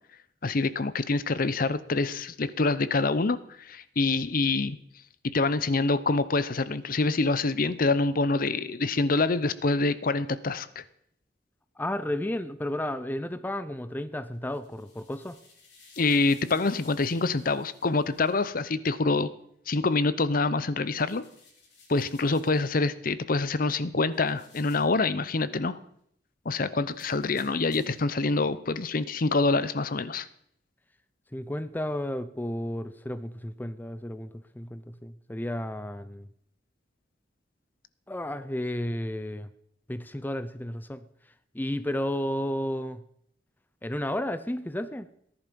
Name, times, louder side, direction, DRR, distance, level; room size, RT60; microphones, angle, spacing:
voice 1, 0.4-4.8 5.3-10.8 16.0-19.3 19.7-21.2 21.9-25.8 26.4-30.3, left 3 dB, 50° left, 15 dB, 0.7 m, -26 dB
voice 2, 11.8-15.4 31.3-36.3 38.1-39.5 39.9-41.0 41.5-43.0 43.8-45.1, left 1 dB, 10° left, 13 dB, 0.5 m, -32 dB
sound 1, 14.3-18.5 20.9-22.7 24.1-25.0 26.9-28.1, left 3 dB, 75° left, 6.9 m, -57 dB
18.0 x 11.0 x 5.3 m, 0.69 s
head